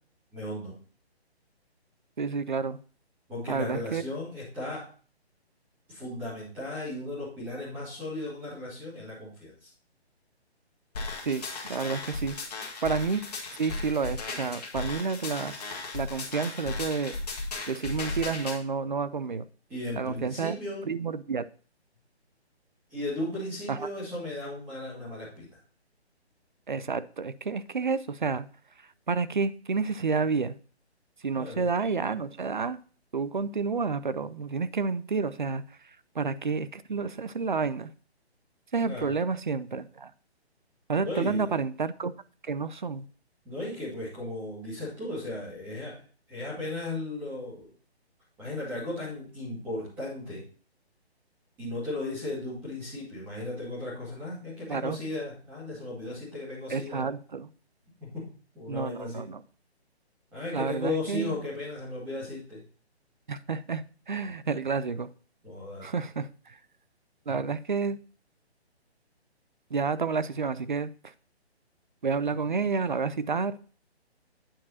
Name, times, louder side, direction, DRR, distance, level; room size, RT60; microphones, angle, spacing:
voice 1, 0.3-0.7 3.3-4.8 5.9-9.7 19.7-20.8 22.9-25.5 31.4-31.7 38.8-39.2 41.0-41.5 43.4-46.0 46.3-47.7 48.4-50.4 51.6-57.1 58.0-58.2 58.5-59.2 60.3-62.6 65.4-65.9, left 2 dB, 5° right, 1.8 m, -36 dB
voice 2, 2.2-2.8 3.5-4.0 11.3-11.4 11.7-12.4 12.8-13.2 13.6-15.5 15.9-17.1 17.7-19.4 20.0-20.6 20.8-21.4 23.7-23.9 26.7-28.5 29.1-30.5 31.2-32.8 33.1-35.6 36.2-37.9 38.7-40.1 40.9-42.1 42.4-43.1 54.7-55.0 56.7-57.5 58.7-59.4 60.5-61.3 63.3-65.1 65.8-66.6 67.3-68.0 69.7-70.9 72.0-73.5, right 5 dB, 50° right, 0.4 m, -30 dB
sound 1, 10.9-18.6, left 3 dB, 35° left, 1.8 m, -36 dB
8.7 x 4.8 x 4.0 m
hypercardioid pair, 175°, 33 cm